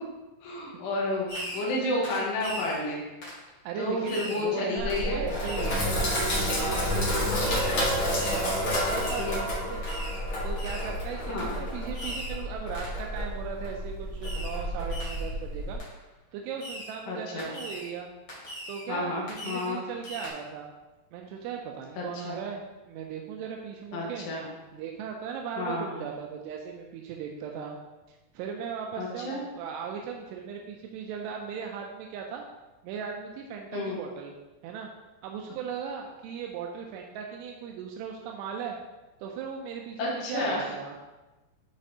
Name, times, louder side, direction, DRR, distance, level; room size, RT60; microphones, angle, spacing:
voice 1, 0.4-3.0 3.8-5.2 8.2-8.3 9.2-9.4 11.3-11.5 17.1-17.5 18.9-19.8 22.0-22.4 23.9-24.5 25.6-26.1 29.0-29.4 33.7-34.0 40.0-40.6, left 2 dB, 85° left, -4 dB, 3.4 m, -31 dB
Fireworks, 1.3-1.8 2.0-2.8 3.2-3.4 4.1-4.5 4.9-5.1 5.4-5.8 6.2-6.4 7.4-7.8 8.2-8.5 9.0-9.4 9.8-10.2 10.6-10.9 11.4-11.5 11.9-12.4 12.7-13.0 14.2-14.6 14.9-15.3 15.8-15.9 16.6-17.0 17.4-17.9 18.3-18.9 19.3-19.7 20.0-20.3, equal, 35° left, 2.5 m, -40 dB
voice 2, 3.7-7.8 8.3-9.9 10.4-15.8 16.3-18.1 18.7-20.7 21.1-24.3 24.7-27.8 28.1-32.5 32.8-34.3 34.6-34.9 35.2-38.8 39.2-41.0, right 7 dB, 85° right, 1 dB, 2.7 m, -37 dB
Sink (filling or washing), 4.8-15.8, equal, 50° left, 1.6 m, -30 dB
11.0 x 4.1 x 2.8 m, 1.1 s
omnidirectional pair, 4.8 m